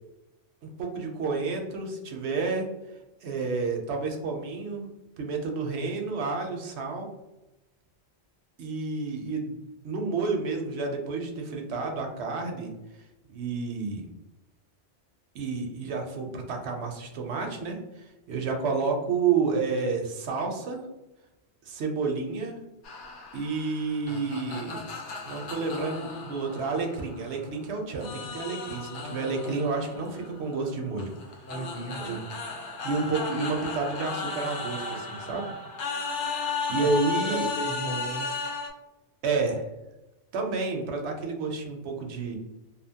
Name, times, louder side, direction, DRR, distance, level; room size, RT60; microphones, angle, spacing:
voice 1, 0.8-2.7 3.2-4.9 5.2-7.1 8.6-9.6 9.8-12.7 13.3-14.1 15.3-20.8 21.7-22.6 23.3-24.8 25.2-31.1 32.0-32.2 32.8-35.5 36.7-37.5 39.2-39.6 40.3-42.4, right 4 dB, 70° right, 2 dB, 0.8 m, -30 dB
sound 1, 22.8-27.6 28.0-38.7, left 4 dB, 85° left, 0.9 m, -35 dB
voice 2, 31.5-32.2 36.8-36.9 37.2-38.3, right 1 dB, 50° left, -2 dB, 0.7 m, -35 dB
2.7 x 2.1 x 2.7 m, 0.98 s
omnidirectional pair, 1.2 m